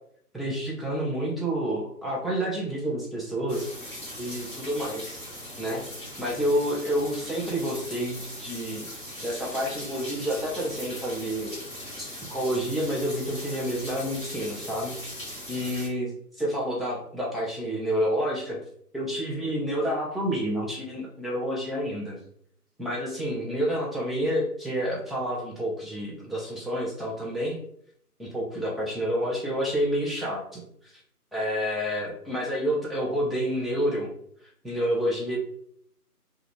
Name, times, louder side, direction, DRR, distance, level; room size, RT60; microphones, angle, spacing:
voice 1, 0.3-3.7 4.2-5.2 5.6-5.8 6.2-8.9 9.2-11.5 12.0-15.0 15.5-16.1 16.4-18.6 18.9-22.2 22.8-27.6 28.2-30.9 31.3-34.1 34.6-35.4, equal, ahead, -6 dB, 0.4 m, -29 dB
sound 1, 3.5-15.9, equal, 35° left, 1.0 m, -40 dB
2.3 x 2.1 x 3.0 m, 0.66 s
figure-of-eight pair, 165°, 47 cm